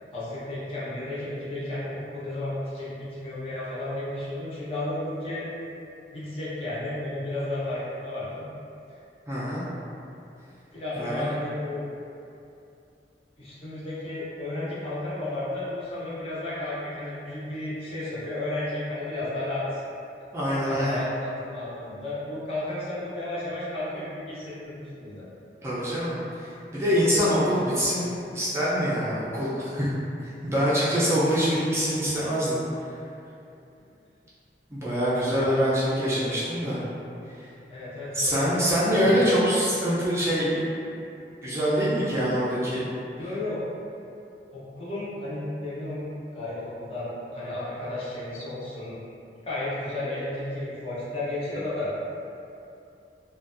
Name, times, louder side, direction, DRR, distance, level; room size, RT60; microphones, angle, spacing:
voice 1, 0.1-5.5 6.1-8.5 10.7-11.8 13.4-19.8 20.6-25.3 35.3-35.6 37.7-38.6 38.9-39.3 43.2-43.6 44.5-46.0 46.3-49.0 49.4-51.9, left 1 dB, 35° left, -9 dB, 0.6 m, -33 dB
voice 2, 9.3-9.6 11.0-11.3 20.3-21.0 25.6-26.5 26.7-29.9 30.2-32.6 34.7-36.8 37.4-37.5 38.1-40.6 41.4-42.9, equal, 15° right, -10 dB, 0.4 m, -24 dB
2.5 x 2.2 x 2.4 m, 2.7 s
head